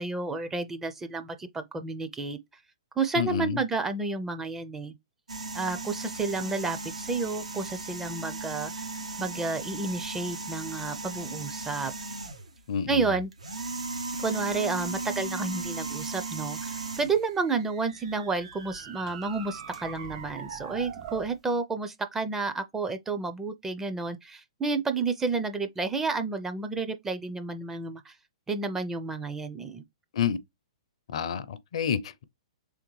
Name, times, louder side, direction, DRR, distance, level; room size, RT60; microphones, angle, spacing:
voice 1, 0.0-2.4 3.0-4.9 5.5-8.9 9.2-11.9 12.9-13.3 14.2-28.1 28.5-29.8, right 4 dB, 10° right, 0.4 m, -31 dB
voice 2, 3.1-3.6 12.7-13.2 30.1-30.4 31.1-32.2, left 7 dB, 65° left, 0.5 m, -29 dB
sound 1, 5.3-12.6 13.3-17.3 19.1-19.2 19.7-19.8, right 3 dB, 90° right, 0.9 m, -36 dB
sound 2, 17.0-21.3, right 7 dB, 55° right, 1.3 m, -43 dB
3.5 x 3.4 x 3.1 m
hypercardioid pair, 125°, 3 cm